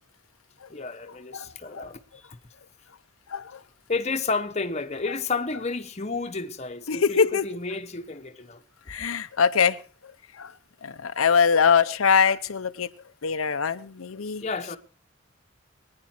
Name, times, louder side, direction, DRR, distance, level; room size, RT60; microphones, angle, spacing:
voice 1, 0.7-2.3 3.9-8.6 14.4-14.8, left 4 dB, 35° left, 1.0 m, -31 dB
voice 2, 1.3-1.8 3.3-3.6 6.9-7.4 8.9-9.8 10.4-10.5 10.8-12.9 13.2-14.4, left 6 dB, 90° left, 0.7 m, -23 dB
22.5 x 9.7 x 4.4 m
head